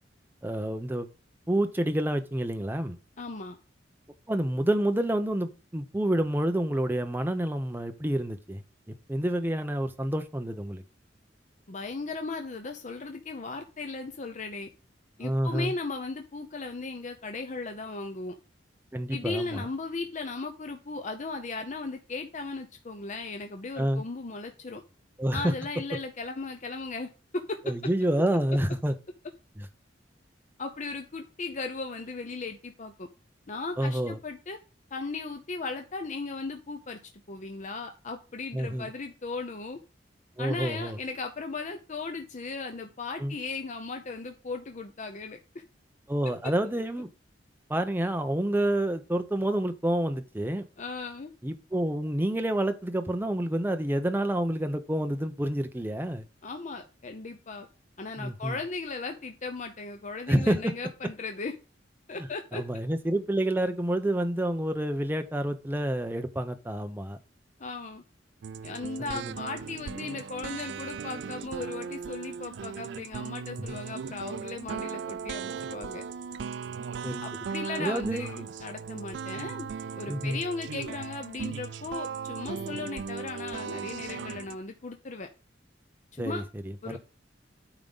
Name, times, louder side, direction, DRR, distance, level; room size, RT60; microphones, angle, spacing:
voice 1, 0.4-1.1 1.5-3.0 4.3-10.8 15.2-15.7 18.9-19.7 23.8-24.0 25.2-25.5 27.6-29.0 29.6-29.7 33.8-34.2 38.5-38.9 40.4-41.0 43.2-43.4 46.1-47.1 47.7-50.7 51.4-56.2 58.2-58.6 60.3-60.8 62.5-67.2 69.0-69.3 73.6-73.8 77.0-77.2 77.8-78.3 80.1-80.4 86.2-87.0, right 1 dB, 10° right, 8 dB, 0.7 m, -28 dB
voice 2, 3.2-3.6 11.7-14.7 15.2-18.4 19.1-24.8 25.3-27.7 30.6-33.1 33.5-34.6 34.9-37.0 37.3-39.8 40.4-45.4 46.4-46.5 50.8-51.3 56.4-57.7 58.0-61.5 62.1-62.6 67.6-68.0 68.6-76.0 77.2-79.7 79.9-85.3 86.1-86.4 86.8-87.0, left 3 dB, 45° left, 5 dB, 0.7 m, -37 dB
sound 1, 68.4-84.6, right 6 dB, 70° right, 0.4 m, -38 dB
9.0 x 3.7 x 5.4 m, 0.33 s
head